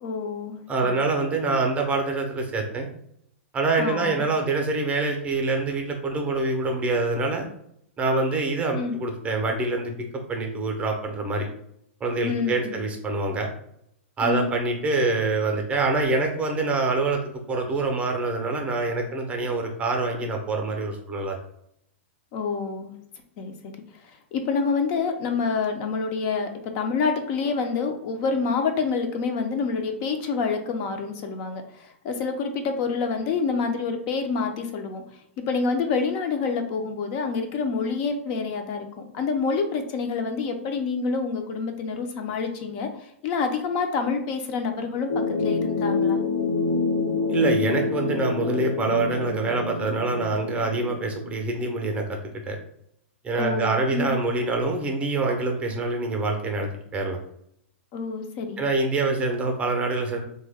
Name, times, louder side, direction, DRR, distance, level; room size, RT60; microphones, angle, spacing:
voice 1, 0.0-0.9 3.8-4.2 8.8-8.9 12.2-12.8 14.2-14.5 22.3-22.9 23.4-23.7 24.1-35.0 35.4-46.2 53.3-54.1 57.9-58.6, left 5 dB, 45° left, 5 dB, 0.5 m, -27 dB
voice 2, 0.7-2.9 3.5-7.4 8.0-11.5 12.0-13.5 14.2-17.2 17.5-21.4 47.3-52.2 52.5-52.6 53.2-57.2 58.6-60.2, right 3 dB, 20° right, 3 dB, 0.6 m, -25 dB
sound 1, 45.1-51.3, left 4 dB, 85° left, 1.1 m, -27 dB
3.0 x 2.2 x 3.4 m, 0.74 s
hypercardioid pair, 125°, 7 cm